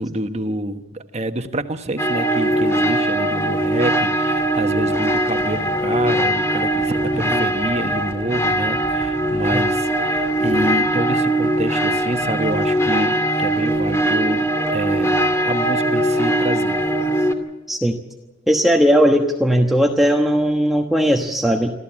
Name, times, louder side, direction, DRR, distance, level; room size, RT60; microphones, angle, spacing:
voice 1, 0.0-16.8, right 1 dB, 35° right, 8 dB, 1.4 m, -27 dB
sound 1, 2.0-17.3, right 1 dB, 15° left, 2.3 m, -20 dB
voice 2, 7.1-7.5 9.5-9.6 17.7-18.0 18.5-21.7, equal, ahead, 1 dB, 1.2 m, -18 dB
26.5 x 14.0 x 8.7 m, 1.1 s
head